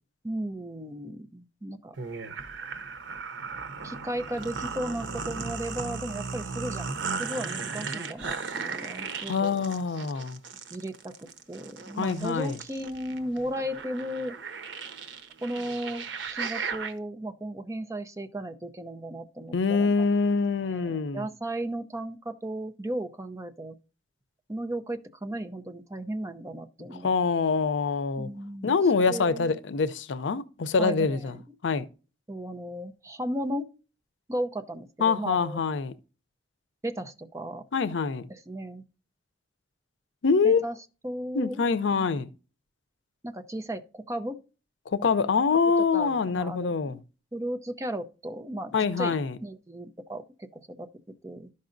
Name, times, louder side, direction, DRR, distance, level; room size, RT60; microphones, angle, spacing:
voice 1, 0.2-2.0 3.8-6.9 7.2-9.5 10.7-14.4 15.4-16.0 16.3-20.0 20.7-23.8 24.5-27.1 28.2-28.8 29.1-29.6 30.7-31.4 32.3-33.7 34.3-35.6 36.8-37.6 38.3-38.8 40.4-40.8 41.0-41.6 43.2-44.4 45.9-47.0 47.3-50.9 51.2-51.5, right 1 dB, 15° right, 0.6 m, -35 dB
sound 1, 2.0-16.9, right 5 dB, 90° right, 0.9 m, -36 dB
voice 2, 9.3-10.4 12.0-12.6 19.5-21.3 27.0-28.3 28.6-31.4 31.6-31.9 35.0-35.9 37.7-38.3 40.2-40.6 41.3-42.3 44.9-47.0 48.7-49.4, left 5 dB, 90° left, 0.5 m, -25 dB
13.0 x 5.4 x 2.5 m
head